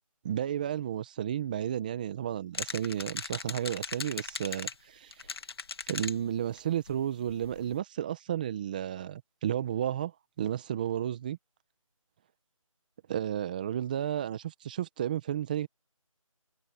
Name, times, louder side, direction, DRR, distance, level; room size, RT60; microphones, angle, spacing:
voice 1, 0.2-5.1 5.9-10.1 10.4-11.4 13.1-15.7, right 10 dB, 15° right, 1.3 m, -32 dB
sound 1, 2.5-4.7 5.1-6.1 6.6-6.7 6.9-7.0 7.3-7.8, left 4 dB, 45° left, 2.3 m, -38 dB
figure-of-eight pair, 170°, 18 cm